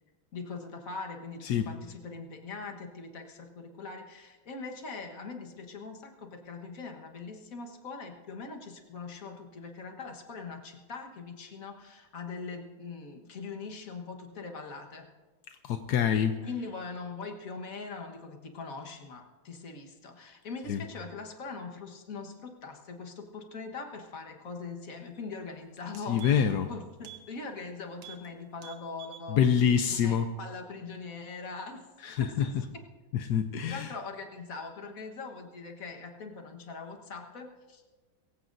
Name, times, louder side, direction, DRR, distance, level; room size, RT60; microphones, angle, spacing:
voice 1, 0.3-15.1 16.4-29.4 29.9-31.9 32.2-32.8 33.7-37.8, left 4 dB, 45° left, 3 dB, 1.6 m, -42 dB
voice 2, 15.6-16.4 20.7-20.8 26.1-26.7 29.3-30.3 32.0-32.5 33.1-33.9, left 8 dB, 70° left, 7 dB, 1.0 m, -26 dB
sound 1, 25.3-25.5 25.8-26.6 27.0-27.3 27.6-27.7 28.0-28.3 28.6-29.3 29.7-29.8, right 11 dB, 75° right, 2.0 m, -48 dB
23.0 x 15.5 x 2.6 m, 1.3 s
omnidirectional pair, 2.3 m